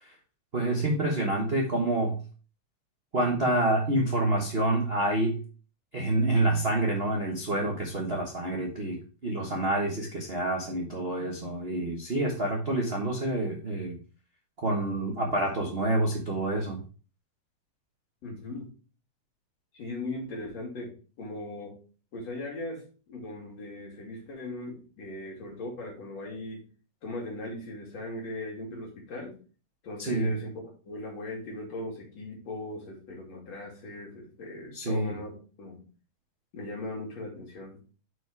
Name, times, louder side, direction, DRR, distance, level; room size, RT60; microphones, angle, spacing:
voice 1, 0.5-2.2 3.1-5.4 5.9-14.0 14.6-16.8 30.0-30.3 34.7-35.2, right 1 dB, 60° right, -1 dB, 0.6 m, -27 dB
voice 2, 18.2-18.7 19.7-20.9 21.2-21.7 22.1-26.6 27.0-29.3 29.8-35.9 36.5-37.8, left 2 dB, 60° left, -2 dB, 3.6 m, -39 dB
6.4 x 4.7 x 4.6 m, 0.37 s
omnidirectional pair, 3.4 m